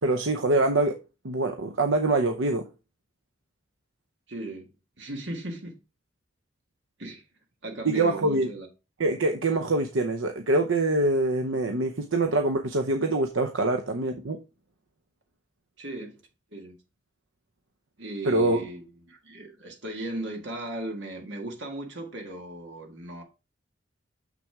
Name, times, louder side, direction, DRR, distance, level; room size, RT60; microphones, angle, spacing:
voice 1, 0.0-1.0 1.2-2.7 7.8-8.5 9.0-14.4 18.2-18.6, right 2 dB, 80° right, 0.7 m, -24 dB
voice 2, 4.3-4.7 5.0-5.7 7.0-7.2 7.6-8.7 15.8-16.2 16.5-16.8 18.0-23.2, right 1 dB, 65° right, 1.8 m, -37 dB
6.8 x 6.1 x 3.5 m
head